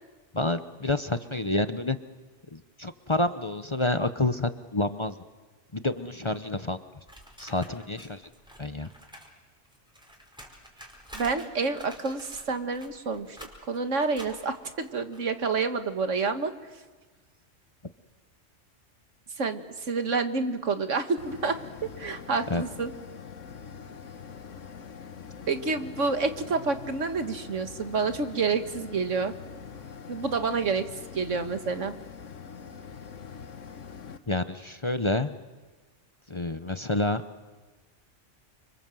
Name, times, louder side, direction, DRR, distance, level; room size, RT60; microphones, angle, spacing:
voice 1, 0.3-2.0 2.5-5.2 5.7-6.8 7.4-8.2 8.6-8.9 22.5-22.6 34.3-35.4 36.3-37.2, left 2 dB, 25° left, 10 dB, 0.9 m, -28 dB
sound 1, 7.1-9.3 9.6-15.7, equal, 5° right, 4.8 m, -49 dB
voice 2, 11.1-13.4 13.7-16.5 19.4-21.6 22.0-22.9 25.5-29.3 30.1-31.9, right 4 dB, 80° right, 8 dB, 2.0 m, -28 dB
sound 2, 21.2-34.2, left 6 dB, 85° left, 1.6 m, -44 dB
29.5 x 26.0 x 7.8 m, 1.3 s
omnidirectional pair, 1.3 m